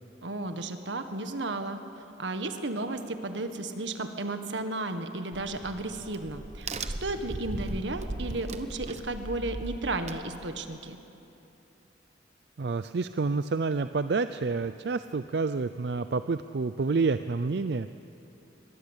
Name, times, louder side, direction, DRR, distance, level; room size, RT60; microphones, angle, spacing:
voice 1, 0.2-1.8 2.2-6.7 7.0-11.0, right 2 dB, 85° right, 8 dB, 1.6 m, -33 dB
Crack, 5.3-10.8, right 2 dB, 35° right, 1.0 m, -38 dB
voice 2, 12.6-17.9, right 4 dB, 65° right, 12 dB, 0.5 m, -28 dB
22.0 x 22.0 x 8.2 m, 2.9 s
head